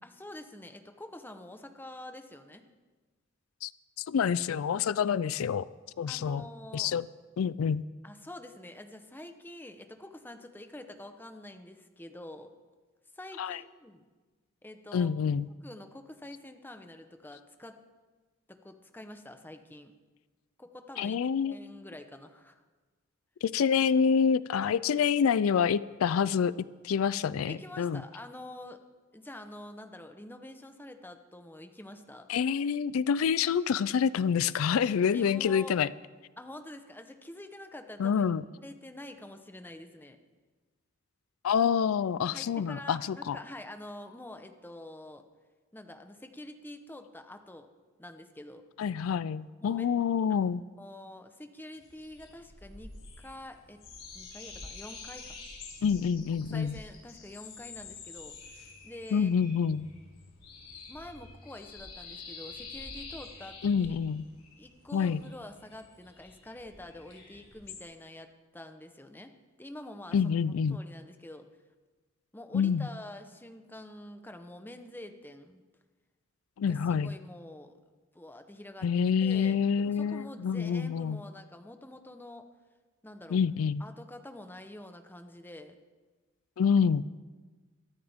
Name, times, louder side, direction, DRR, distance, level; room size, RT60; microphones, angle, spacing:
voice 1, 0.0-2.6 6.1-6.9 8.0-12.5 13.1-14.0 14.6-15.1 15.6-17.8 18.5-19.9 20.6-22.6 27.4-28.8 29.1-32.3 35.1-35.7 36.4-38.2 38.6-40.2 42.2-45.2 45.7-47.7 48.0-48.6 49.6-49.9 50.8-53.8 54.1-55.4 56.5-59.3 60.9-64.0 64.6-70.3 70.7-71.5 72.3-75.6 76.6-77.8 78.1-82.5 83.0-83.4 83.8-85.7, left 1 dB, 10° left, 6 dB, 0.9 m, -47 dB
voice 2, 4.1-5.6 6.0-6.4 6.7-7.1 7.4-7.8 13.4-13.6 14.9-15.5 21.0-21.6 23.4-26.5 26.8-28.0 32.3-35.9 38.0-38.4 41.4-43.4 48.8-50.6 55.8-56.7 59.1-59.9 63.6-64.2 64.9-65.2 70.1-70.8 72.5-72.9 76.6-77.1 78.8-81.2 83.3-83.8 86.6-87.1, left 7 dB, 90° left, 18 dB, 0.4 m, -27 dB
sound 1, 51.8-67.8, left 4 dB, 70° left, 5.0 m, -48 dB
22.5 x 13.0 x 3.6 m, 1.3 s
head